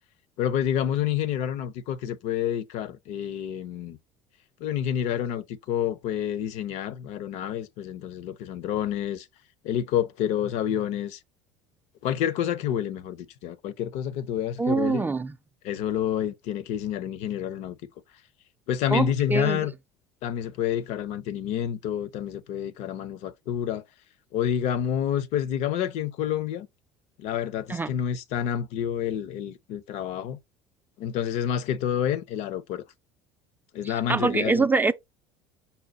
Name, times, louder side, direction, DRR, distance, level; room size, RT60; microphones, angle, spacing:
voice 1, 0.4-4.0 4.6-9.3 9.6-11.2 12.0-15.0 15.6-17.8 18.7-19.7 20.2-23.8 24.3-26.7 27.2-30.4 31.0-32.8 33.7-34.7, left 10 dB, 65° left, 0.5 m, -28 dB
voice 2, 14.6-15.3 18.9-19.6 27.7-28.0 34.1-34.9, right 3 dB, 15° right, 0.4 m, -24 dB
5.5 x 2.2 x 3.8 m
hypercardioid pair, 75°, 13 cm